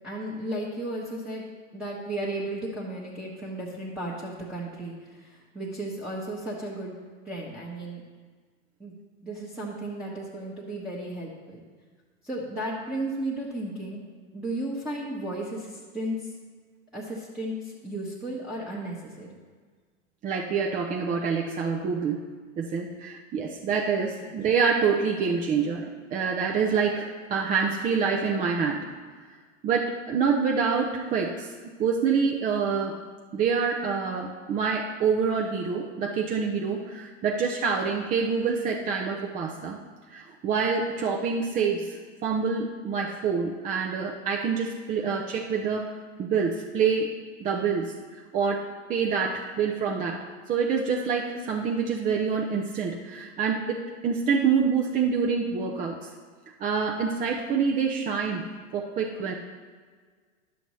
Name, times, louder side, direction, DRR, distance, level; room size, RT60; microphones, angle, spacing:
voice 1, 0.0-1.5 1.7-7.0 7.2-8.0 8.8-8.9 9.2-11.6 12.2-14.0 14.3-16.3 16.9-19.3, right 1 dB, ahead, -7 dB, 1.0 m, -34 dB
voice 2, 20.2-22.3 22.6-28.9 29.6-31.5 31.8-33.0 33.3-39.8 40.1-47.1 47.4-47.9 48.3-56.0 56.6-58.4 58.7-59.3, right 5 dB, 20° right, 1 dB, 0.4 m, -26 dB
11.0 x 7.0 x 3.1 m, 1.6 s
hypercardioid pair, 115°, 40 cm